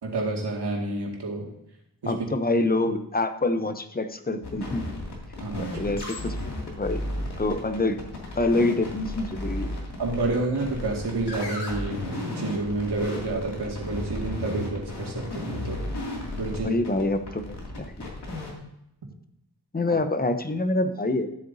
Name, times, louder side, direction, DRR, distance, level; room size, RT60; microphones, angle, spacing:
voice 1, 0.0-1.5 2.0-2.2 5.4-6.0 10.0-15.8 16.4-16.7, right 2 dB, 85° right, -1 dB, 2.1 m, -29 dB
voice 2, 2.1-5.0 5.6-7.0 7.4-8.0 8.4-9.7 16.6-18.0 19.7-21.3, left 2 dB, 25° left, 8 dB, 0.7 m, -26 dB
sound 1, 4.4-18.5, left 1 dB, 85° left, 2.5 m, -34 dB
12.5 x 7.7 x 2.7 m, 0.82 s
wide cardioid pair, 100°, 39 cm